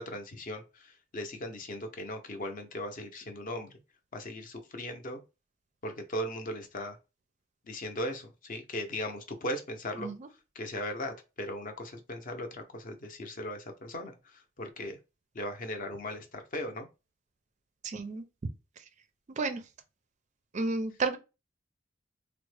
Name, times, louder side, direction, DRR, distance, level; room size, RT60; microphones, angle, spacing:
voice 1, 0.0-3.8 4.1-5.2 5.8-7.0 7.6-10.1 10.5-15.0 15.3-16.9, left 1 dB, 45° left, 0.6 m, -38 dB
voice 2, 17.8-18.2 19.3-19.6 20.5-21.2, right 3 dB, 35° right, 0.4 m, -31 dB
3.5 x 2.0 x 3.2 m
head